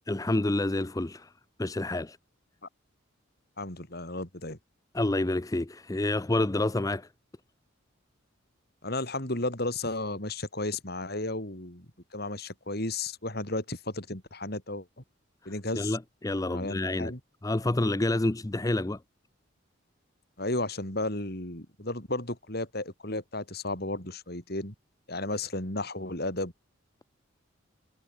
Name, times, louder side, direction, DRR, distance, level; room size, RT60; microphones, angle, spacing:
voice 1, 0.1-1.3 1.6-2.2 4.9-7.1 15.4-17.1 17.4-19.0, left 2 dB, 15° left, 0.5 m, -28 dB
voice 2, 3.6-4.6 8.8-11.8 12.1-14.9 15.4-16.0 16.5-17.2 20.4-24.7 25.1-26.5, left 2 dB, 50° left, 4.8 m, -33 dB
head